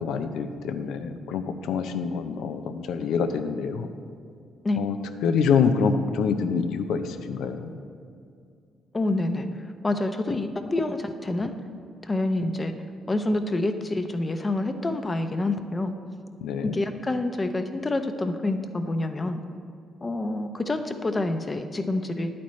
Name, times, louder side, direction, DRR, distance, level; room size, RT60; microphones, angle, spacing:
voice 1, 0.0-3.9 4.8-5.0 5.2-7.7 16.4-16.7, left 6 dB, 85° left, 8 dB, 0.5 m, -26 dB
voice 2, 8.9-9.5 9.8-11.5 12.0-12.7 13.1-15.9 16.6-19.4 20.0-22.3, left 2 dB, 25° left, 8 dB, 0.6 m, -27 dB
10.5 x 8.5 x 3.2 m, 2.4 s
cardioid pair, 90°, 0 cm